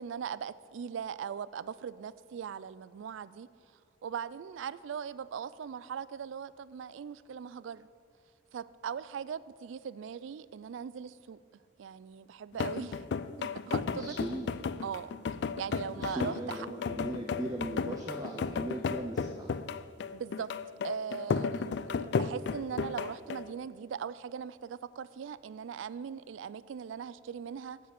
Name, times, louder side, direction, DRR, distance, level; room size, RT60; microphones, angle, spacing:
voice 1, 0.0-3.5 4.0-7.9 8.5-11.4 11.8-13.1 13.4-14.2 14.8-15.1 15.6-16.7 20.1-20.5 20.8-27.8, right 7 dB, 80° right, 18 dB, 0.3 m, -40 dB
sound 1, 12.5-23.5, left 5 dB, 60° left, 0.3 m, -34 dB
voice 2, 13.9-14.5 16.0-19.5, right 1 dB, 20° right, 1 dB, 0.6 m, -38 dB
7.6 x 6.9 x 8.1 m, 2.5 s
head